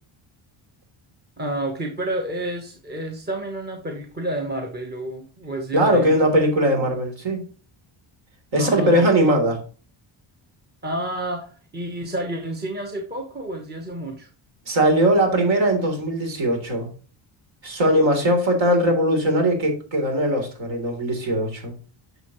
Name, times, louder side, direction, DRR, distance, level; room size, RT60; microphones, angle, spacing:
voice 1, 1.4-6.1 8.6-9.4 10.8-14.3, right 1 dB, 20° right, 2 dB, 1.2 m, -30 dB
voice 2, 5.7-7.4 8.5-9.6 14.7-16.9 17.6-21.7, right 1 dB, 65° right, 3 dB, 3.6 m, -20 dB
10.5 x 6.7 x 3.1 m, 0.37 s
cardioid pair, 165°, 49 cm